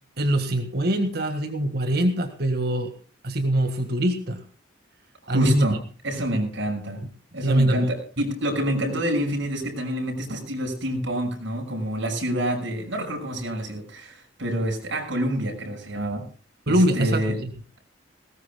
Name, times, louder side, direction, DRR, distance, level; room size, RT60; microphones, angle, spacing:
voice 1, 0.2-2.9 3.2-4.4 5.3-5.7 7.4-7.9 16.7-17.5, right 1 dB, 55° right, 7 dB, 1.7 m, -23 dB
voice 2, 5.2-7.0 7.3-16.2 16.7-17.4, equal, 85° right, 1 dB, 5.8 m, -27 dB
20.0 x 17.5 x 2.2 m, 0.39 s
head